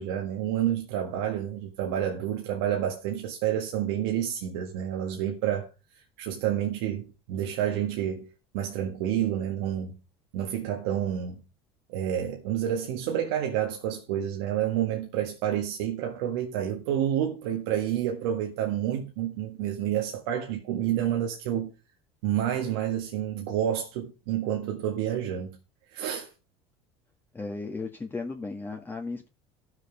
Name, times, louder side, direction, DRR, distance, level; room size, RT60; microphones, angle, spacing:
voice 1, 0.0-5.7 6.2-8.3 8.5-10.0 10.3-11.4 11.9-21.7 22.2-25.6 25.9-26.3, right 10 dB, 80° right, 1.7 m, -29 dB
voice 2, 27.3-29.3, left 3 dB, 15° left, 1.7 m, -35 dB
14.0 x 6.6 x 5.1 m
supercardioid pair, 100°, 13 cm